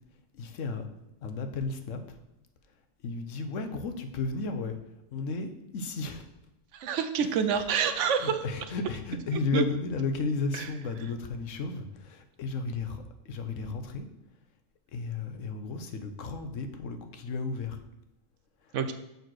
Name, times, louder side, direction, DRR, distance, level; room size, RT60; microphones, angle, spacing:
voice 1, 0.3-0.9 1.2-2.2 3.0-4.8 5.1-6.2 7.2-7.6 8.2-14.1 14.9-17.8 18.6-18.8, left 3 dB, 75° left, 7 dB, 1.1 m, -34 dB
voice 2, 6.7-8.4 9.5-9.6 10.5-10.7 18.7-18.9, right 7 dB, 70° right, 9 dB, 0.9 m, -27 dB
6.7 x 4.0 x 6.2 m, 0.90 s
omnidirectional pair, 1.3 m